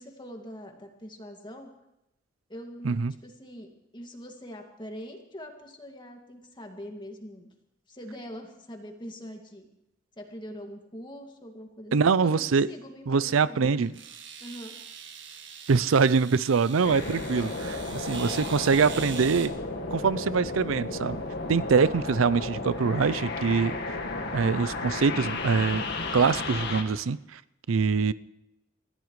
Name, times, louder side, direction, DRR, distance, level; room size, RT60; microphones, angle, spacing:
voice 1, 0.0-1.7 2.5-7.5 7.9-9.7 10.2-11.9 12.2-13.9 14.4-14.7 17.3-17.5, equal, 25° left, 2 dB, 2.1 m, -43 dB
voice 2, 11.9-12.7 13.1-13.9 15.7-17.5 17.9-19.5 19.9-21.2 21.5-23.7 24.3-25.8 26.1-27.4 27.7-28.1, right 5 dB, 90° right, 17 dB, 0.5 m, -24 dB
sound 1, 13.1-13.2 13.9-19.5, right 7 dB, 65° right, 1.7 m, -43 dB
sound 2, 16.8-26.8, left 3 dB, 60° left, 1.9 m, -33 dB
30.0 x 15.0 x 3.2 m, 0.87 s
head